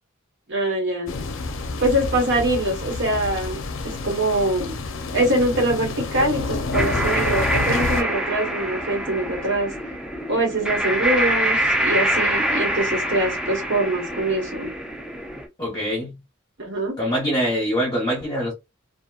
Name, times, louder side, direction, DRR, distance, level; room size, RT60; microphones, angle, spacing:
voice 1, 0.5-1.1 1.8-4.8 5.1-9.7 10.3-14.7 16.6-17.0, right 1 dB, 60° right, 1.5 m, -23 dB
sound 1, 1.1-8.0, left 3 dB, 65° left, 0.5 m, -29 dB
sound 2, 6.7-15.5, right 1 dB, 5° right, 0.5 m, -25 dB
voice 2, 15.6-16.2 17.0-18.5, equal, 20° left, 0.9 m, -24 dB
2.8 x 2.4 x 2.3 m
head